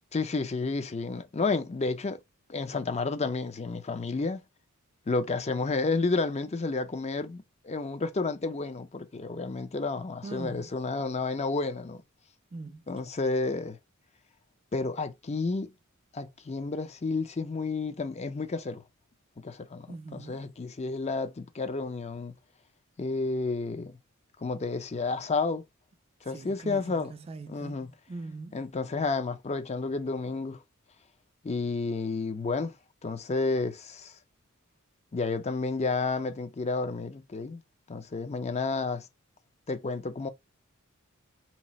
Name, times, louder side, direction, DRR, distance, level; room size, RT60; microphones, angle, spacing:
voice 1, 0.1-2.2 2.5-4.4 5.1-12.0 12.9-13.8 14.7-15.7 16.1-18.8 19.4-22.3 23.0-24.0 24.4-25.6 26.2-27.1 27.5-27.9 28.5-30.6 31.4-32.7 33.0-34.1 35.1-37.6 37.9-39.1 39.7-40.3, left 3 dB, 30° left, 0.5 m, -31 dB
voice 2, 10.2-10.7 12.5-12.9 19.9-20.5 26.3-28.6, right 3 dB, 30° right, 0.3 m, -42 dB
2.9 x 2.4 x 4.0 m
head